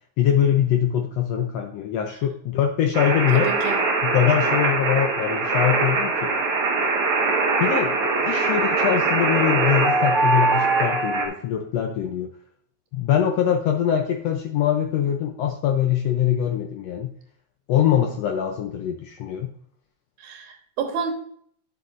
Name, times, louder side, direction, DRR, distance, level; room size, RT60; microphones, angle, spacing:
voice 1, 0.2-3.5 4.0-6.3 7.6-8.0 8.2-12.3 12.9-17.1 17.7-19.5, left 10 dB, 75° left, 4 dB, 1.5 m, -23 dB
sound 1, 2.9-11.3, right 3 dB, 50° right, 2.0 m, -22 dB
voice 2, 3.3-3.8 20.2-21.1, right 6 dB, 80° right, 3 dB, 2.8 m, -29 dB
9.9 x 7.0 x 2.5 m, 0.62 s
omnidirectional pair, 3.5 m